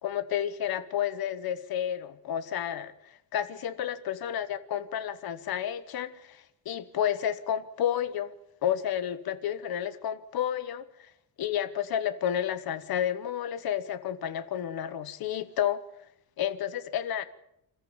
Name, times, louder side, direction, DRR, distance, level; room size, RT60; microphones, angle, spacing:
voice 1, 0.0-2.9 3.3-8.3 8.6-10.8 11.4-15.8 16.4-17.3, left 10 dB, 70° left, 12 dB, 1.2 m, -31 dB
26.5 x 14.0 x 7.3 m, 0.80 s
cardioid pair, 170°, 38 cm